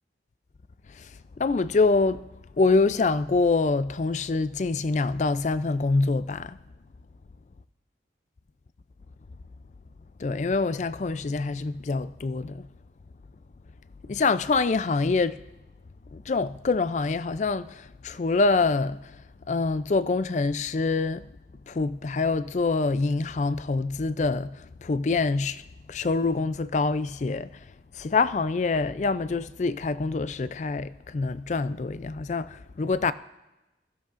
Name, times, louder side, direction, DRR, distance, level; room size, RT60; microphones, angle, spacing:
voice 1, 1.4-2.2 2.6-6.6 10.2-12.7 14.1-15.4 16.1-19.1 19.5-21.3 21.7-25.6 25.9-27.6 27.9-33.1, left 3 dB, 40° left, 0.4 m, -25 dB
21.5 x 15.0 x 2.5 m
head